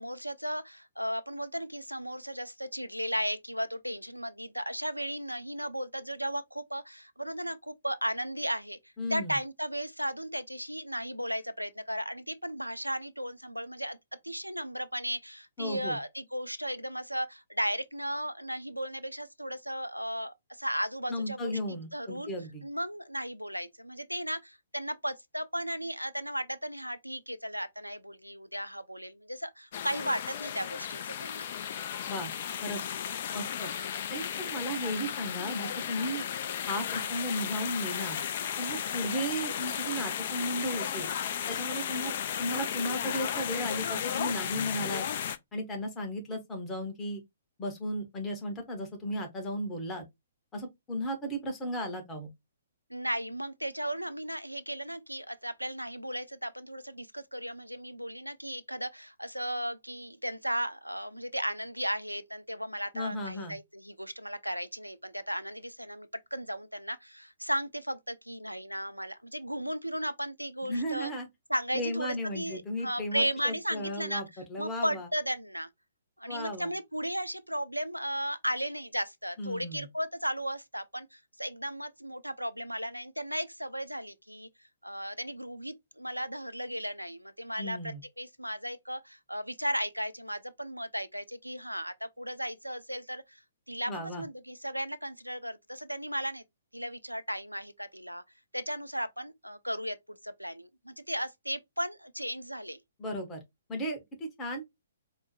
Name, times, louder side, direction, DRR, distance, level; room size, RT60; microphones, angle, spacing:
voice 1, 0.0-8.8 9.1-14.0 14.2-21.6 21.9-22.3 22.6-31.5 52.9-71.1 71.5-74.2 74.6-75.7 76.2-84.5 84.8-93.4 93.7-96.4 96.7-98.2 98.5-102.8, equal, 90° right, 0.5 m, -35 dB
voice 2, 9.0-9.4 15.6-16.0 21.1-22.6 32.1-32.3 32.6-32.8 33.3-33.7 34.1-36.3 36.7-38.2 38.6-41.1 41.5-42.1 42.4-45.1 45.5-47.2 47.6-50.1 50.5-52.3 62.9-63.6 70.6-71.3 71.7-75.1 76.3-76.7 79.4-79.9 87.6-88.0 93.9-94.2 103.0-103.4 103.7-104.6, equal, 15° left, 1.0 m, -35 dB
sound 1, 29.7-45.4, left 9 dB, 45° left, 0.4 m, -34 dB
4.4 x 2.1 x 3.0 m
figure-of-eight pair, 125°, 0 cm